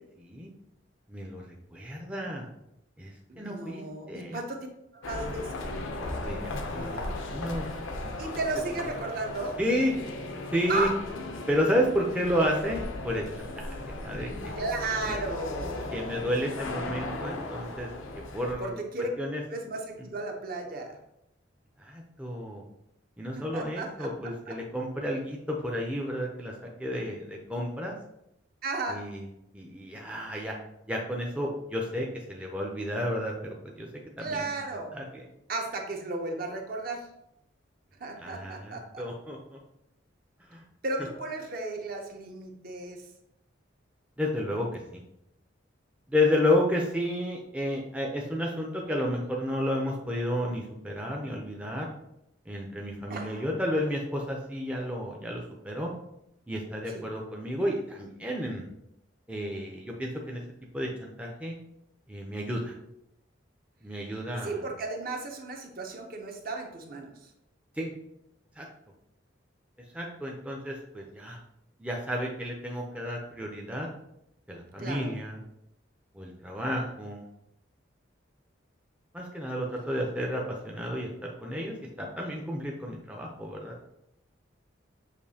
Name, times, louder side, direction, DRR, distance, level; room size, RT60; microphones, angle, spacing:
voice 1, 0.2-0.5 1.1-1.4 1.7-2.5 3.0-4.4 6.2-7.7 8.0-8.1 9.6-10.0 10.5-10.9 11.5-13.8 14.0-14.5 15.1-15.2 15.9-17.9 18.3-18.8 19.2-19.4 21.8-22.6 23.2-27.9 28.9-29.2 29.5-30.6 30.9-33.9 34.2-34.5 34.9-35.2 38.2-39.6 40.5-40.6 44.2-45.0 46.1-51.9 52.5-55.9 56.5-58.7 59.3-60.4 60.7-61.6 62.1-62.7 63.8-64.6 67.8-67.9 68.6-68.7 69.9-71.4 71.8-73.9 74.5-75.4 76.1-77.3 79.1-83.8, left 1 dB, 5° right, -1 dB, 0.5 m, -31 dB
voice 2, 3.3-4.6 5.0-5.6 8.2-9.6 10.7-11.0 14.6-15.9 18.6-19.1 19.5-21.0 23.4-24.6 28.6-29.0 34.2-34.9 35.5-37.1 38.0-39.1 40.8-43.0 53.1-53.4 56.9-57.0 64.4-67.1 74.8-75.1, right 2 dB, 45° right, 2 dB, 0.7 m, -34 dB
sound 1, 5.0-18.5, left 2 dB, 85° left, 0.6 m, -37 dB
6.6 x 2.7 x 2.7 m, 0.81 s
head